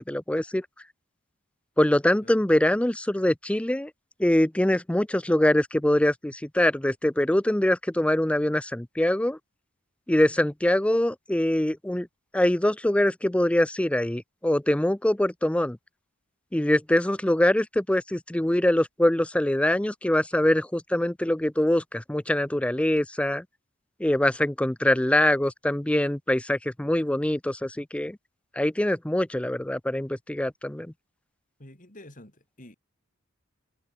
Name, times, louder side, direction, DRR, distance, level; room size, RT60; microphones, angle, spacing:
voice 1, 0.1-0.7 1.8-3.9 4.2-9.4 10.1-12.1 12.3-15.8 16.5-23.4 24.0-28.2 28.6-30.9, left 1 dB, 5° left, 0.5 m, -24 dB
voice 2, 31.6-32.8, left 1 dB, 40° left, 5.9 m, -48 dB
head